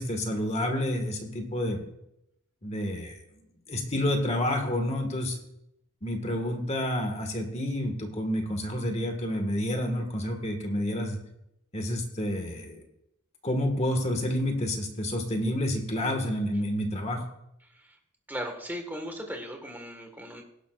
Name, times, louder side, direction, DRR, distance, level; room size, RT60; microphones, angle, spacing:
voice 1, 0.0-1.8 2.6-3.2 3.7-5.4 6.0-11.2 11.7-12.8 13.4-17.2, left 1 dB, 30° left, 4 dB, 1.7 m, -29 dB
voice 2, 17.6-18.0 18.3-20.4, equal, 10° right, 3 dB, 1.5 m, -37 dB
17.5 x 11.0 x 2.5 m, 0.81 s
head